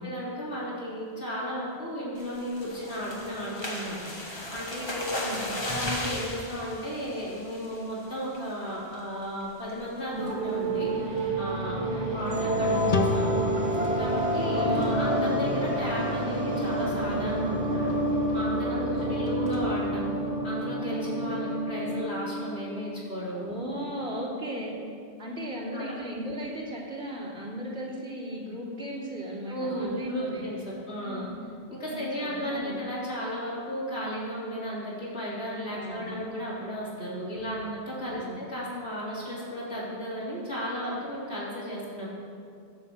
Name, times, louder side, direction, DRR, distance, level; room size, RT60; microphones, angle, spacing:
voice 1, 0.0-11.0 11.4-13.4 14.0-17.9 18.3-20.2 20.4-23.5 24.6-24.7 25.7-26.0 29.5-31.2 31.7-42.1, equal, 80° left, -8 dB, 3.6 m, -34 dB
sound 1, 2.2-7.9 8.3-8.6 8.9-9.0 9.4-9.7, left 1 dB, 25° left, 1.7 m, -36 dB
voice 2, 5.2-5.5 11.8-12.1 14.5-14.9 18.7-19.2 23.3-24.7 25.2-30.4 31.0-31.4 31.8-32.8 35.7-36.1 37.3-37.7 38.1-38.4, equal, 85° right, -6 dB, 3.2 m, -36 dB
sound 2, 10.1-23.0, right 1 dB, 40° right, 2.2 m, -28 dB
sound 3, 12.9-16.3, left 2 dB, 50° left, 1.1 m, -32 dB
16.0 x 5.6 x 7.7 m, 2.4 s
omnidirectional pair, 1.1 m